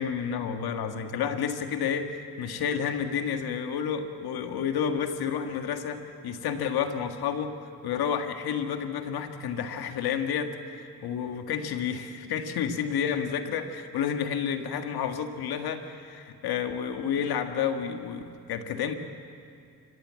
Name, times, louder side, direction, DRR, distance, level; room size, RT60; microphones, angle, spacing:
voice 1, 0.0-18.9, left 7 dB, 80° left, 6 dB, 1.8 m, -30 dB
29.5 x 16.0 x 7.6 m, 2.3 s
supercardioid pair, 60°, 37 cm